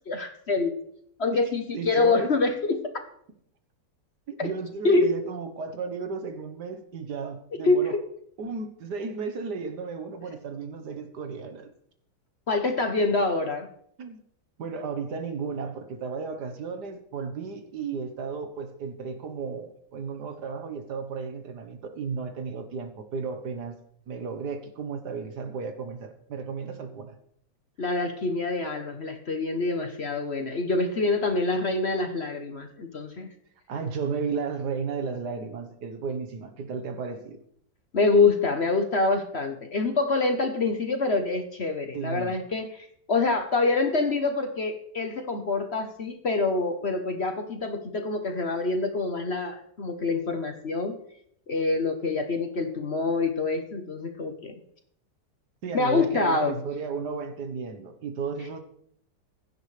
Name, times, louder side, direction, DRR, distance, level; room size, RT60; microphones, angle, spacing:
voice 1, 0.1-0.8 1.2-2.8 4.4-4.5 4.8-5.1 7.6-7.8 12.5-13.7 27.8-33.3 37.9-51.0 51.5-54.5 55.7-56.6, left 3 dB, 45° left, 6 dB, 1.1 m, -26 dB
voice 2, 1.7-2.3 4.3-8.0 8.4-11.7 14.0-14.2 14.6-23.8 24.1-27.2 33.7-37.4 41.9-42.4 55.6-58.6, right 5 dB, 70° right, 7 dB, 1.7 m, -34 dB
16.0 x 11.0 x 3.3 m, 0.67 s
omnidirectional pair, 1.9 m